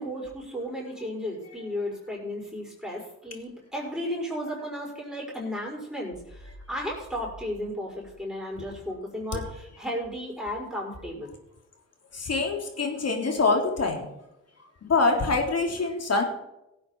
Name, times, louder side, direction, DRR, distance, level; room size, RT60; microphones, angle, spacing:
voice 1, 0.0-11.3, equal, ahead, -3 dB, 5.8 m, -34 dB
voice 2, 12.1-14.1 14.8-16.2, left 3 dB, 55° left, 3 dB, 3.2 m, -25 dB
16.5 x 8.8 x 4.6 m, 0.88 s
supercardioid pair, 45°, 30 cm